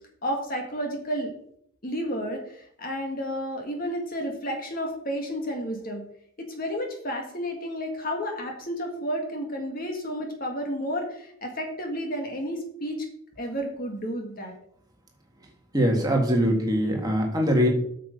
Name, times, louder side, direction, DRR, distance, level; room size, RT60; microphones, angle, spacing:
voice 1, 0.2-1.3 1.8-6.0 6.4-13.1 13.4-14.5, equal, 40° left, 2 dB, 1.9 m, -31 dB
voice 2, 15.7-17.7, equal, 20° right, 0 dB, 1.8 m, -22 dB
8.8 x 6.8 x 5.3 m, 0.67 s
head